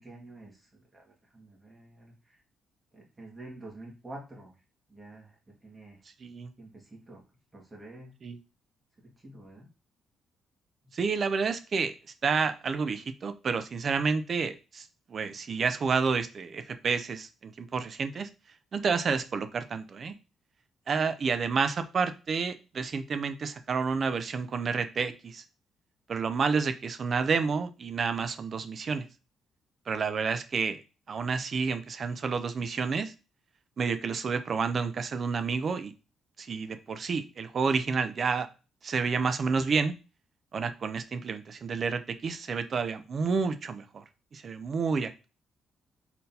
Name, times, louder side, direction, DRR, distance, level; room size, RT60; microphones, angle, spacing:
voice 1, 0.0-2.4 2.9-4.5 4.9-6.0 6.6-7.2 7.5-8.1 9.0-9.7, right 2 dB, 25° right, -1 dB, 1.8 m, -48 dB
voice 2, 6.2-6.5 8.2-8.4 10.9-11.9 12.2-18.3 18.7-20.2 20.9-25.4 26.1-29.1 29.9-30.8 31.1-33.1 33.8-35.9 36.4-38.5 38.8-39.9 40.5-44.0 44.3-45.3, right 5 dB, 45° right, 10 dB, 0.5 m, -30 dB
4.0 x 3.8 x 2.7 m, 0.31 s
cardioid pair, 90°, 0 cm